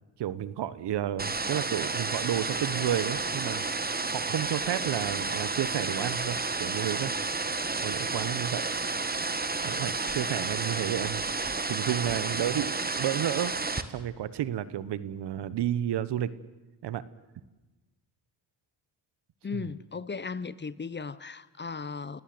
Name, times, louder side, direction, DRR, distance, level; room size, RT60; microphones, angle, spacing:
voice 1, 0.2-3.6 4.1-7.1 7.8-8.7 9.6-13.5 13.9-16.3 16.8-17.0 19.5-19.7, right 11 dB, 70° right, 1.2 m, -31 dB
sound 1, 1.2-13.8, right 3 dB, 20° right, 1.6 m, -31 dB
voice 2, 19.4-22.2, left 5 dB, 25° left, 0.9 m, -36 dB
29.5 x 17.0 x 7.8 m
supercardioid pair, 65°, 42 cm